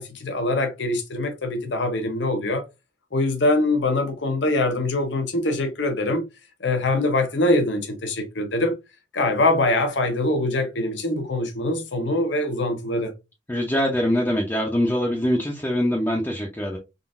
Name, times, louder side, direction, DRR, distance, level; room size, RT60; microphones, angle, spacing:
voice 1, 0.0-2.6 3.1-6.2 6.6-8.7 9.1-13.1, left 2 dB, 70° left, 0.9 m, -23 dB
voice 2, 13.5-16.8, equal, 10° left, 0.6 m, -23 dB
3.8 x 2.6 x 2.5 m
head